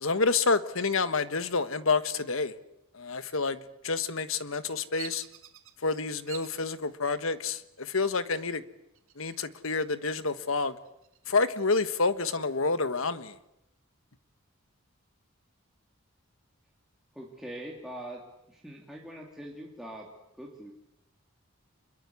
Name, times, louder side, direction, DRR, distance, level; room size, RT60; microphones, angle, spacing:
voice 1, 0.0-2.5 2.9-5.2 5.8-8.6 9.2-10.8 11.3-13.4, left 4 dB, 80° left, 1.4 m, -28 dB
Bird vocalization bird call bird song, 5.0-5.7 6.3-6.7 7.3-7.8 8.9-9.7 10.1-10.2 10.6-12.0, right 11 dB, 75° right, 2.8 m, -47 dB
voice 2, 17.1-20.1 20.4-20.7, right 1 dB, ahead, 2.9 m, -43 dB
26.5 x 22.0 x 8.5 m
head